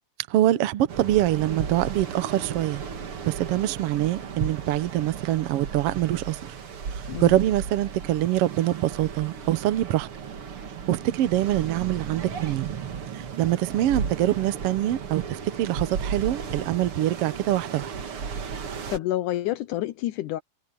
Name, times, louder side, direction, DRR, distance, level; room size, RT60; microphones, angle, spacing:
voice 1, 0.3-2.8 3.3-6.6 7.2-10.1 10.9-12.7 13.1-17.9, right 13 dB, 70° right, 1.4 m, -24 dB
sound 1, 0.9-19.0, right 6 dB, 50° right, 2.3 m, -35 dB
voice 2, 7.1-7.4 18.9-20.4, left 14 dB, 80° left, 2.3 m, -28 dB
omnidirectional pair, 3.7 m